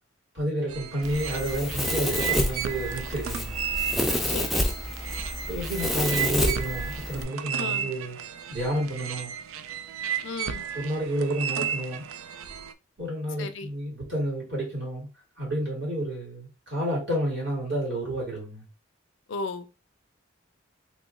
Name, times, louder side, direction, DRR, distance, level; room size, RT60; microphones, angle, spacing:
voice 1, 0.3-3.5 5.5-8.2 8.5-9.3 10.5-12.1 13.0-15.1 15.4-18.6, right 1 dB, 55° right, 1.8 m, -30 dB
sound 1, 0.7-12.7, right 8 dB, 85° right, 0.3 m, -34 dB
Domestic sounds home sounds, 1.0-7.2, left 1 dB, ahead, 0.4 m, -29 dB
voice 2, 4.3-4.7 7.6-7.9 10.2-10.6 13.4-13.7 19.3-19.7, left 3 dB, 60° left, 0.4 m, -35 dB
3.0 x 2.2 x 3.6 m
head